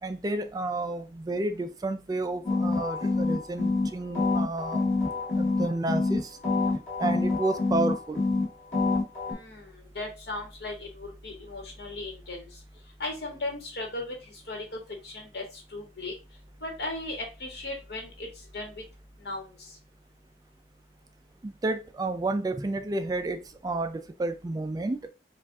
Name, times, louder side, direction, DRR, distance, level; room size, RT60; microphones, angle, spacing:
voice 1, 0.0-4.8 5.3-6.4 7.0-8.2 21.4-25.1, right 2 dB, 20° right, 0.3 m, -31 dB
sound 1, 2.4-3.9 4.1-6.2 6.4-8.4 8.7-9.3, left 3 dB, 40° left, 2.2 m, -26 dB
voice 2, 9.3-12.5 13.0-14.2 14.5-14.8 15.0-15.4 15.7-16.1 16.6-18.3 18.5-18.8 19.2-19.5, left 2 dB, 65° left, 1.7 m, -36 dB
4.8 x 2.5 x 3.4 m
head